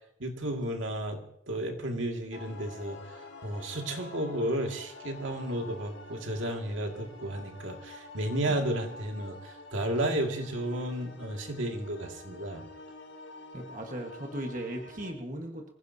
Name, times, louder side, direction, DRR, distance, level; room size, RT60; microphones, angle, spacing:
voice 1, 0.2-12.6, right 1 dB, 80° right, 2 dB, 2.2 m, -33 dB
sound 1, 2.3-15.1, left 2 dB, 65° left, 1.7 m, -48 dB
voice 2, 13.5-15.7, right 1 dB, 40° right, 2 dB, 1.5 m, -37 dB
25.0 x 15.5 x 2.8 m, 0.71 s
head